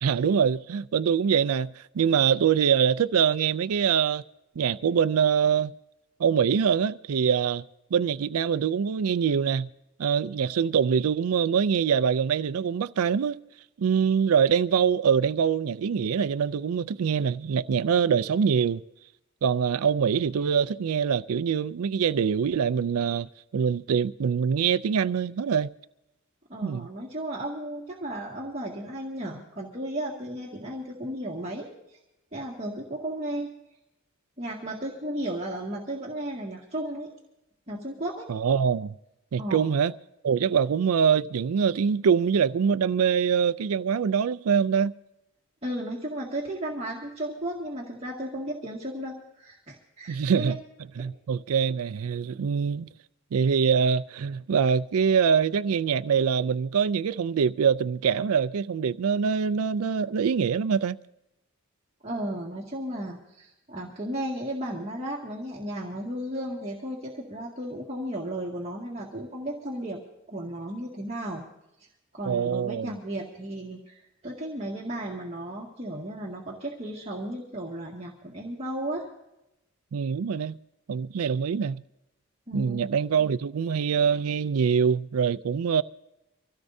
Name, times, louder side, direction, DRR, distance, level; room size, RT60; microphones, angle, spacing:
voice 1, 0.0-4.2 4.6-5.7 6.2-7.6 7.9-9.7 10.0-13.4 13.8-18.8 19.4-25.7 26.6-26.9 38.3-38.9 39.3-39.9 40.2-44.9 50.1-50.6 51.0-52.9 53.3-61.0 72.2-72.9 79.9-80.6 80.9-81.8 82.5-85.8, right 7 dB, 85° right, 0.4 m, -24 dB
voice 2, 26.5-32.0 32.3-33.5 34.4-37.1 37.7-38.3 39.4-39.6 45.6-50.5 62.0-70.0 70.3-71.5 71.8-71.9 72.1-79.1 82.5-82.8, right 1 dB, 30° right, 2.0 m, -34 dB
25.0 x 16.5 x 2.7 m
head